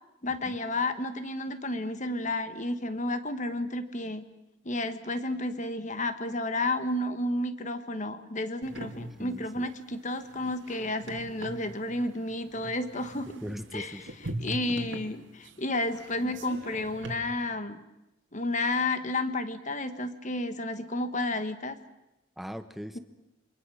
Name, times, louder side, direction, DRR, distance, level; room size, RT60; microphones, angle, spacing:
voice 1, 0.2-4.2 4.6-13.4 13.7-14.0 14.4-17.8 18.3-21.8, left 2 dB, 35° left, 10 dB, 1.5 m, -31 dB
sound 1, 8.6-17.1, right 1 dB, 60° right, 2.5 m, -42 dB
voice 2, 9.2-9.7 13.4-14.4 22.4-23.0, equal, ahead, 10 dB, 1.1 m, -40 dB
28.0 x 23.5 x 6.4 m, 0.92 s
head